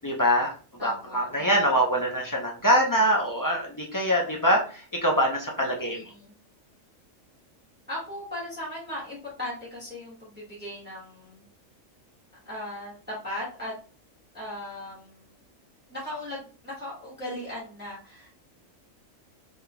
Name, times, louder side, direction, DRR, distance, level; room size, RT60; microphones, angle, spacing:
voice 1, 0.0-0.5 0.8-6.0, equal, 30° left, -1 dB, 0.3 m, -24 dB
voice 2, 0.8-1.5 5.9-6.4 7.9-11.4 12.4-13.7 14.3-15.4 15.9-18.3, left 1 dB, 10° right, -7 dB, 1.5 m, -38 dB
3.7 x 3.7 x 2.2 m, 0.39 s
omnidirectional pair, 1.4 m